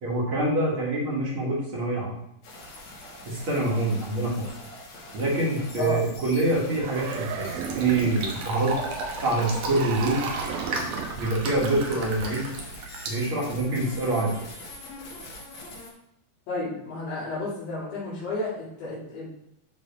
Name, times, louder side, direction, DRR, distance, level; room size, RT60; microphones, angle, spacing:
voice 1, 0.0-2.2 3.2-4.5 5.1-8.8 9.2-10.3 11.2-12.5 13.1-14.3, right 2 dB, 40° right, -5 dB, 2.5 m, -26 dB
sound 1, 2.4-15.9, left 2 dB, 60° left, 2.6 m, -44 dB
sound 2, 6.7-8.3 9.7-11.3, right 8 dB, 90° right, 2.5 m, -35 dB
Fill (with liquid), 6.9-13.9, right 3 dB, 65° right, 1.9 m, -34 dB
voice 2, 16.5-19.4, left 2 dB, 75° left, -8 dB, 4.1 m, -32 dB
12.0 x 4.0 x 3.4 m, 0.79 s
omnidirectional pair, 4.1 m